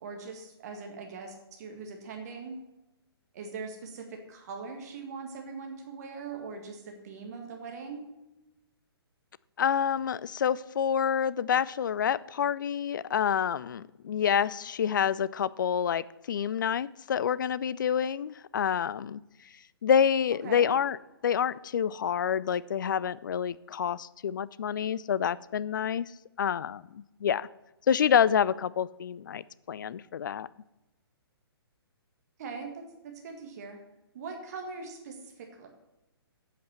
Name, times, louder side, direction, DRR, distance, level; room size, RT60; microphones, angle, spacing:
voice 1, 0.0-2.6 3.3-8.0 20.4-20.7 32.4-33.8 34.1-35.7, right 4 dB, 40° right, 3 dB, 1.8 m, -41 dB
voice 2, 9.6-19.2 19.8-21.0 21.2-26.1 26.4-27.5 27.9-30.5, left 8 dB, 50° left, 19 dB, 0.4 m, -28 dB
8.3 x 7.9 x 7.1 m, 0.97 s
figure-of-eight pair, 130°, 13 cm